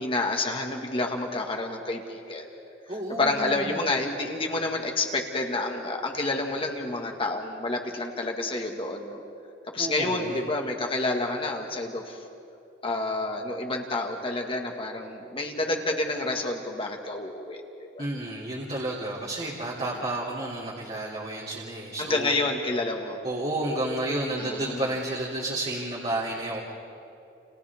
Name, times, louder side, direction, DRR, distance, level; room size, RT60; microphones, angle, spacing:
voice 1, 0.0-2.5 3.2-9.2 9.7-12.2 12.8-18.0 22.0-23.2 24.4-24.9, left 2 dB, 30° left, 2 dB, 1.8 m, -29 dB
voice 2, 2.9-3.7 9.8-10.4 18.0-22.3 23.2-26.6, right 1 dB, 35° right, -6 dB, 3.0 m, -31 dB
30.0 x 29.5 x 3.6 m, 2.8 s
head